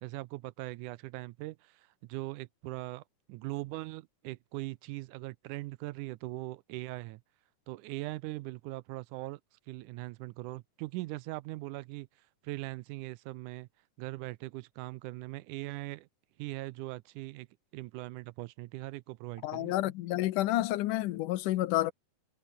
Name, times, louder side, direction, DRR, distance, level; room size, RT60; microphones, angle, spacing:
voice 1, 0.0-3.0 3.3-7.2 7.7-9.4 9.7-12.1 12.4-13.7 14.0-16.1 16.4-17.5 17.7-19.7, right 19 dB, 85° right, 2.1 m, -40 dB
voice 2, 19.4-21.9, left 16 dB, 80° left, 2.4 m, -29 dB
omnidirectional pair, 3.7 m